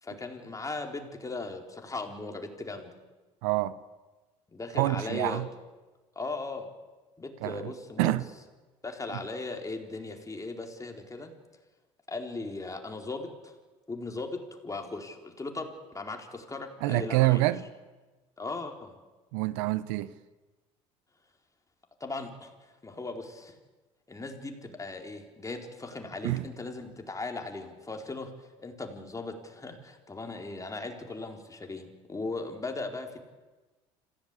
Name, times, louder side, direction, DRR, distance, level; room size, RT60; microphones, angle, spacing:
voice 1, 0.0-3.0 4.5-5.4 6.2-6.7 7.2-8.2 8.8-11.3 12.1-13.5 13.9-14.4 14.6-17.5 18.4-19.0 22.0-22.5 22.8-23.5 24.1-28.3 28.6-33.2, left 3 dB, 20° left, 4.3 m, -38 dB
voice 2, 3.4-3.8 4.7-5.5 7.4-7.6 8.0-8.2 9.1-9.2 16.8-17.7 19.3-20.1 26.2-26.5, right 18 dB, 75° right, 0.8 m, -26 dB
26.5 x 16.0 x 8.5 m
hypercardioid pair, 65°, 16 cm